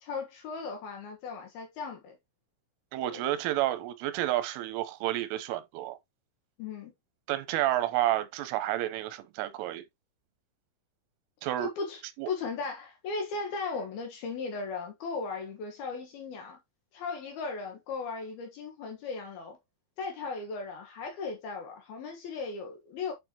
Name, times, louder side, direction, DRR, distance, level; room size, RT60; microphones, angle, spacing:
voice 1, 0.0-2.2 3.1-3.2 6.6-6.9 11.6-12.0 12.3-16.6 16.9-19.6 20.0-23.1, left 4 dB, 65° left, 2.8 m, -37 dB
voice 2, 2.9-6.0 7.3-9.8 11.4-11.7 12.2-12.3, right 14 dB, 90° right, 3.4 m, -30 dB
9.0 x 5.5 x 2.9 m
omnidirectional pair, 5.5 m